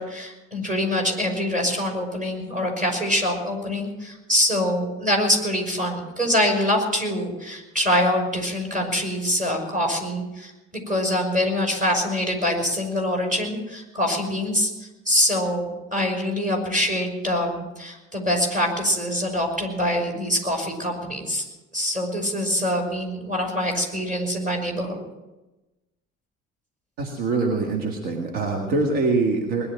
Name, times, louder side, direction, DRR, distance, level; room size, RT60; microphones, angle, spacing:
voice 1, 0.0-21.4 21.7-25.0, left 1 dB, 20° right, 1 dB, 5.8 m, -24 dB
voice 2, 27.0-29.7, right 3 dB, 60° right, 2 dB, 2.1 m, -24 dB
20.5 x 11.0 x 6.0 m, 1.0 s
figure-of-eight pair, 50°, 40 cm